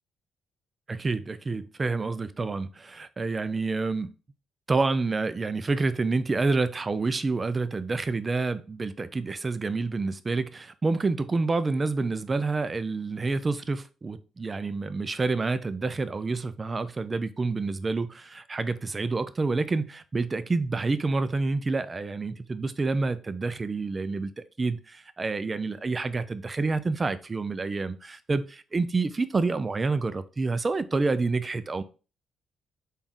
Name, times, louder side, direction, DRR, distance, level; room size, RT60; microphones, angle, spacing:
voice 1, 0.9-4.1 4.7-31.8, right 3 dB, 30° right, 0.3 m, -28 dB
4.0 x 2.4 x 3.5 m
cardioid pair, 90°, 0 cm